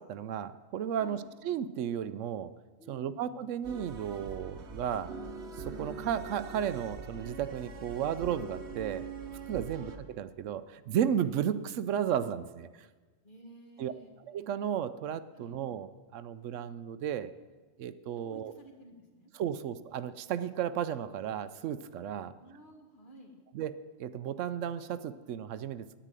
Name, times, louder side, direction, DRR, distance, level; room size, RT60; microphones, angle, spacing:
voice 1, 0.1-2.5 2.9-5.1 5.7-9.0 9.5-12.9 13.8-13.9 14.3-17.3 17.8-18.5 19.3-22.3 23.5-25.9, right 9 dB, 80° right, 13 dB, 0.9 m, -34 dB
voice 2, 2.8-3.4 11.2-11.4 13.2-14.1 15.3-15.6 18.2-19.6 22.1-23.4, right 1 dB, 40° left, 2 dB, 1.8 m, -54 dB
sound 1, 3.6-10.0, right 4 dB, 65° right, 1.2 m, -43 dB
10.0 x 9.1 x 8.9 m, 1.4 s
omnidirectional pair, 1.3 m